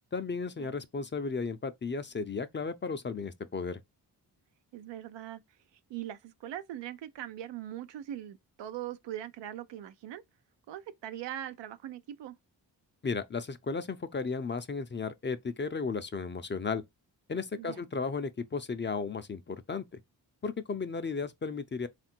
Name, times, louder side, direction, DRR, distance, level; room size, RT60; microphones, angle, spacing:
voice 1, 0.1-3.8 13.0-16.8 17.3-19.8 20.4-21.9, left 4 dB, 25° left, 0.5 m, -34 dB
voice 2, 4.7-5.4 5.9-10.2 10.7-12.3 17.6-17.9, right 12 dB, 80° right, 0.6 m, -41 dB
3.6 x 2.5 x 4.3 m
cardioid pair, 60°, 42 cm